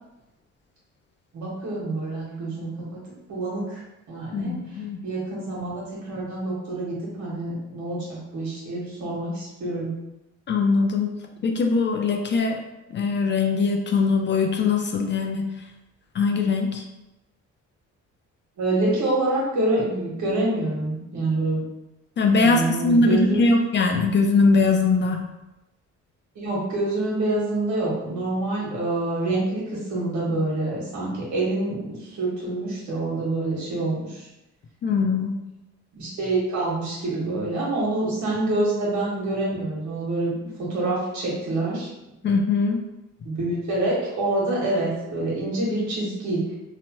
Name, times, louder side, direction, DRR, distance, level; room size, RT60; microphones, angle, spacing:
voice 1, 1.3-2.7 3.3-3.8 4.1-4.6 5.0-9.9 18.6-21.6 22.4-23.6 26.3-29.6 29.9-34.3 35.9-41.9 43.2-46.4, right 2 dB, 70° right, -5 dB, 1.3 m, -26 dB
voice 2, 4.3-5.0 10.5-11.1 11.4-12.6 12.9-15.5 16.1-16.8 22.2-25.2 34.8-35.4 42.2-42.8, left 4 dB, 40° left, 3 dB, 0.4 m, -21 dB
2.9 x 2.1 x 2.9 m, 0.93 s
cardioid pair, 90°, 30 cm